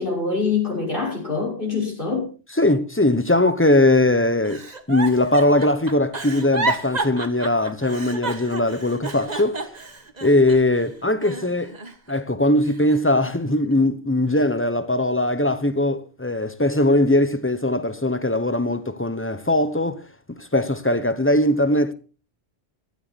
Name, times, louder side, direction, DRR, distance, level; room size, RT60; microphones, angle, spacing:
voice 1, 0.0-2.3, left 4 dB, 50° left, 5.9 m, -24 dB
voice 2, 2.5-9.7 10.2-11.7 12.1-20.0 20.3-21.9, left 1 dB, 10° left, 1.1 m, -20 dB
Giggle, 4.4-10.8 11.2-12.2 12.6-13.7 14.3-14.6, right 3 dB, 40° right, 1.7 m, -31 dB
16.0 x 13.0 x 4.3 m
omnidirectional pair, 1.1 m